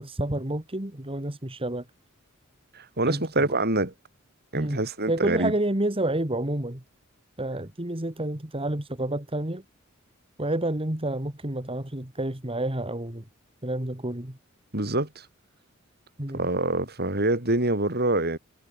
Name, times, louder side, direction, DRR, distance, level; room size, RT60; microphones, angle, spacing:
voice 1, 0.0-1.8 3.1-3.5 4.5-4.8 5.1-6.8 7.4-9.6 10.4-13.3 13.6-14.4 16.2-16.4, right 1 dB, 25° right, 2.5 m, -29 dB
voice 2, 2.7-3.9 4.5-5.5 14.7-15.2 16.3-18.4, right 2 dB, 50° right, 6.4 m, -25 dB
head